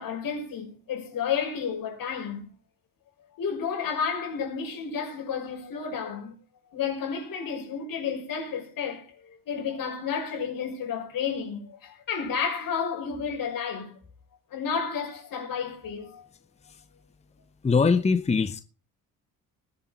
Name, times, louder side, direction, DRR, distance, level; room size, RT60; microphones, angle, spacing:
voice 1, 0.0-2.5 3.4-6.3 6.7-13.9 14.5-16.3, left 6 dB, 70° left, 6.2 m, -31 dB
voice 2, 17.6-18.6, left 4 dB, 20° left, 0.8 m, -22 dB
20.5 x 8.3 x 4.4 m
cardioid pair, 105°, 35 cm